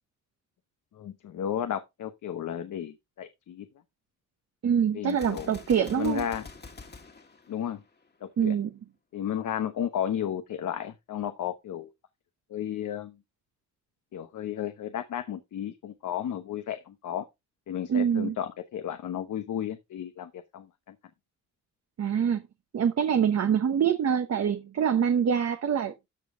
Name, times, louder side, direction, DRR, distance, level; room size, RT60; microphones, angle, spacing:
voice 1, 0.9-3.7 4.9-5.5 6.0-6.5 7.5-7.8 8.2-8.5 9.1-11.9 12.5-13.2 14.1-17.3 17.7-21.0, left 9 dB, 85° left, 1.1 m, -33 dB
voice 2, 4.6-6.2 8.4-8.7 17.9-18.3 22.0-22.4 22.7-25.9, right 8 dB, 60° right, 1.0 m, -25 dB
Gunshot gunfire, 5.1-8.2, left 4 dB, 35° left, 1.8 m, -46 dB
13.5 x 5.3 x 3.7 m
cardioid pair, 100°, 30 cm